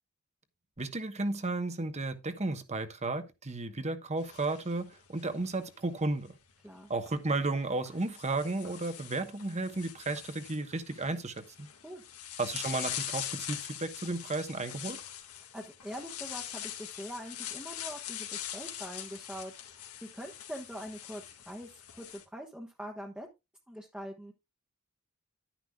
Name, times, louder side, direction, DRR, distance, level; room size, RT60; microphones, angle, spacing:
voice 1, 0.8-6.3 6.9-11.7 12.4-15.0, right 2 dB, 30° right, 1.2 m, -33 dB
sound 1, 4.2-5.7 6.9-7.1 7.9-22.2, left 11 dB, 85° left, 2.0 m, -43 dB
voice 2, 15.5-23.3 23.7-24.3, equal, 5° right, 1.2 m, -43 dB
11.0 x 10.0 x 2.3 m
head